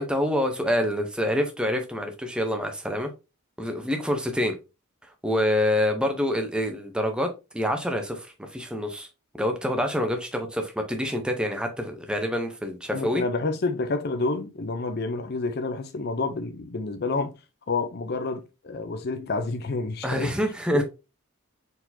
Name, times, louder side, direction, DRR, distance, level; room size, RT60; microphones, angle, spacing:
voice 1, 0.0-3.1 3.6-4.6 5.2-9.1 9.4-13.2 20.0-20.8, equal, 5° right, 0.7 m, -26 dB
voice 2, 12.9-17.3 17.7-20.4 20.7-20.8, left 3 dB, 45° left, 0.5 m, -29 dB
4.6 x 4.0 x 2.7 m
head